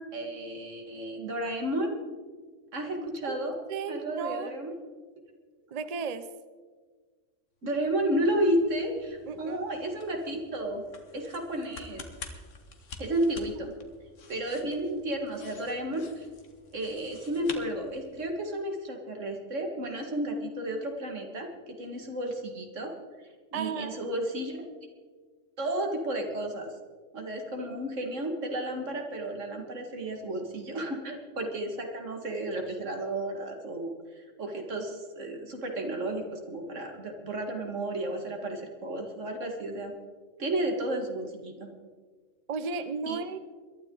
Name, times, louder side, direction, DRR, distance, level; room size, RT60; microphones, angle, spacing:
voice 1, 0.0-2.0 2.7-3.6 3.9-4.7 7.6-10.8 11.1-12.1 13.0-13.7 14.3-16.3 16.7-22.9 23.5-24.6 25.6-26.7 27.1-39.9 40.4-41.7 43.1-43.2, right 1 dB, 85° right, 3 dB, 2.3 m, -32 dB
voice 2, 3.7-4.5 5.7-6.3 9.3-9.6 23.5-24.0 42.5-43.4, right 5 dB, 40° right, 12 dB, 0.6 m, -34 dB
sound 1, 7.6-18.4, left 4 dB, 85° left, 1.7 m, -49 dB
22.0 x 12.0 x 3.9 m, 1.5 s
omnidirectional pair, 1.2 m